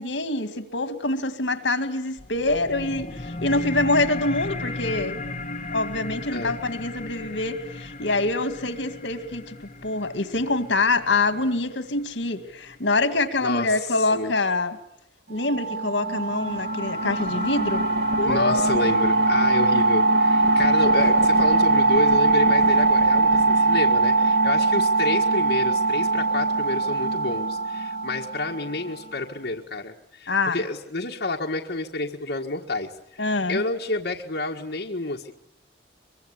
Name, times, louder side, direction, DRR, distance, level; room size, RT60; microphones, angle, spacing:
voice 1, 0.0-5.2 5.7-9.6 9.8-14.8 15.3-17.9 18.2-18.7 30.3-30.6 33.2-33.6, left 2 dB, 80° left, 2.1 m, -25 dB
sound 1, 2.2-13.2, left 2 dB, 40° left, 1.7 m, -36 dB
voice 2, 13.4-14.3 18.2-35.3, left 2 dB, 65° left, 1.7 m, -29 dB
sound 2, 15.4-28.9, right 3 dB, 55° right, 2.3 m, -21 dB
24.0 x 23.5 x 9.8 m
head